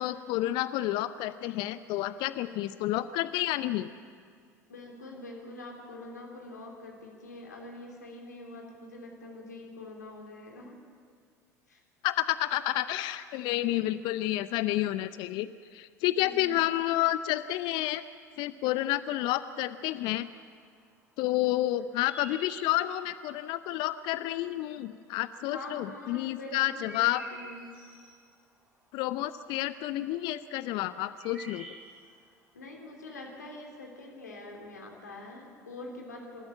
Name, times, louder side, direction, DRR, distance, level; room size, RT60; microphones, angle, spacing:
voice 1, 0.0-3.9 12.0-18.0 18.4-20.3 21.2-27.2 28.9-31.7, left 15 dB, 55° left, 13 dB, 0.7 m, -30 dB
voice 2, 4.7-10.8 11.7-11.8 16.1-16.6 25.5-27.7 32.5-36.4, left 2 dB, 85° left, 0 dB, 3.3 m, -44 dB
sound 1, 21.8-23.1 25.1-25.2 26.4-28.2 30.6-30.7 30.9-32.2, right 1 dB, 15° right, 7.8 m, -48 dB
27.5 x 13.5 x 9.1 m, 2.1 s
figure-of-eight pair, 70°, 9 cm